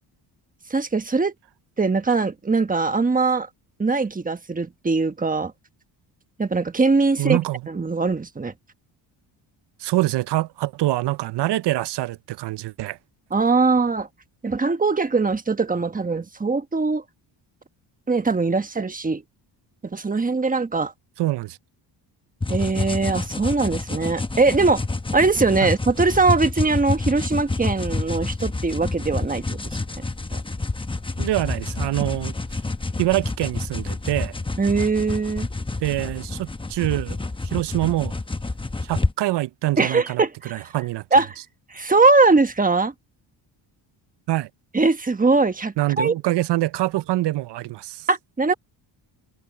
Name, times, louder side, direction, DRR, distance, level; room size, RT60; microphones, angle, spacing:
voice 1, 0.7-1.3 1.8-3.5 3.8-5.5 6.4-7.4 7.7-8.5 13.3-14.1 14.4-17.0 18.1-19.2 19.8-20.9 22.5-24.8 25.1-30.0 30.3-30.4 34.6-35.5 39.8-40.7 41.1-41.4 41.7-42.9 44.7-46.1 48.1-48.5, right 3 dB, 15° right, 1.3 m, -21 dB
voice 2, 7.2-7.6 9.8-13.0 21.2-21.6 25.6-25.7 31.2-32.3 33.0-34.3 35.8-37.2 37.4-38.1 38.8-40.2 40.5-41.0 44.3-44.5 45.8-48.1, right 16 dB, 60° right, 0.6 m, -25 dB
sound 1, 22.4-39.1, left 3 dB, 10° left, 0.9 m, -28 dB
cardioid pair, 110°, 46 cm